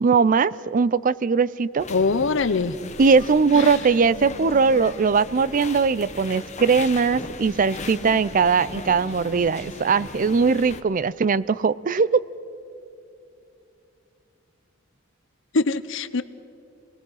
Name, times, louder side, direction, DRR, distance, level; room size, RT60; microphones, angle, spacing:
voice 1, 0.0-1.9 3.0-12.2, right 5 dB, 40° right, 18 dB, 0.4 m, -20 dB
sound 1, 1.8-10.8, left 3 dB, 35° left, 1.0 m, -38 dB
voice 2, 1.9-2.8 3.5-3.8 15.5-16.2, left 4 dB, 65° left, 14 dB, 0.8 m, -23 dB
29.5 x 20.5 x 5.7 m, 2.6 s
head